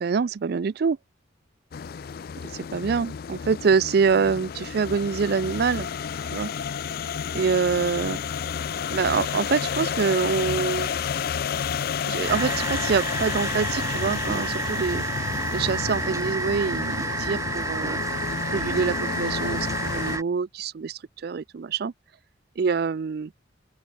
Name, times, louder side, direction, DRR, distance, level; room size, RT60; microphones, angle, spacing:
voice 1, 0.0-1.0 2.5-5.9 6.3-6.5 7.3-8.2 8.9-10.9 12.1-15.0 15.5-18.0 18.5-21.9 22.6-23.3, right 5 dB, 55° right, 0.4 m, -25 dB
sound 1, 1.7-20.2, left 7 dB, 50° left, 0.3 m, -31 dB
sound 2, 12.3-20.2, right 3 dB, 15° right, 1.1 m, -30 dB
open air
head